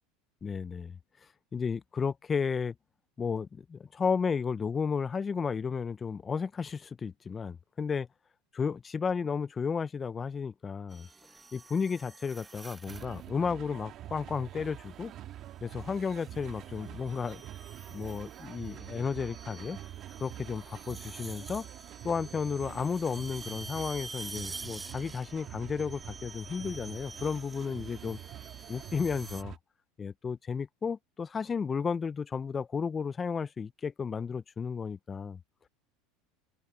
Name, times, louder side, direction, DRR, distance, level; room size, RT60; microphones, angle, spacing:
voice 1, 0.4-1.0 1.5-2.7 3.2-8.1 8.5-11.1 11.5-15.1 15.6-17.4 17.9-19.8 20.2-21.7 22.0-28.2 28.7-29.5 30.0-35.4, left 6 dB, 25° left, 0.7 m, -33 dB
sound 1, 10.9-13.3 14.6-15.0 15.9-29.4, right 3 dB, 15° right, 0.5 m, -48 dB
sound 2, 12.9-29.6, right 12 dB, 45° right, 1.8 m, -46 dB
open air
supercardioid pair, 120°, 0 cm